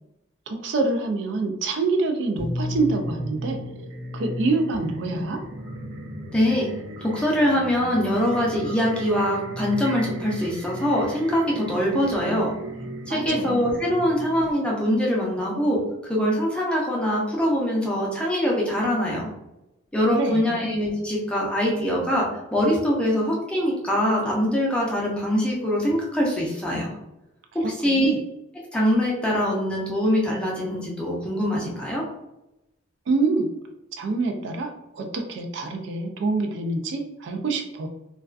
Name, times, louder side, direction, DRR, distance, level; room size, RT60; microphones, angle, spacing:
voice 1, 0.5-3.6 4.1-5.4 13.1-13.7 20.1-20.6 27.6-28.2 33.1-33.5 33.9-37.9, right 3 dB, 60° right, 4 dB, 0.3 m, -26 dB
sound 1, 2.4-14.5, equal, 85° right, 0.7 m, -35 dB
voice 2, 6.3-6.7 7.0-12.5 13.1-19.3 19.9-26.9 27.5-28.1 28.7-32.0, equal, 5° left, -4 dB, 0.5 m, -23 dB
2.3 x 2.3 x 2.3 m, 0.91 s
head